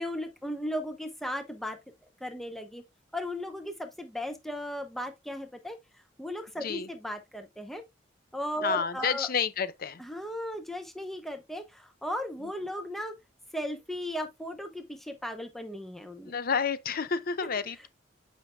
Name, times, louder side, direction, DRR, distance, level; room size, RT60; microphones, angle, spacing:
voice 1, 0.0-1.8 2.2-2.8 3.1-5.8 6.2-7.8 8.3-9.3 10.0-13.1 13.5-16.3, equal, ahead, 0.7 m, -36 dB
voice 2, 8.6-10.0 16.3-17.9, left 6 dB, 50° left, 0.6 m, -30 dB
8.3 x 5.5 x 2.3 m
head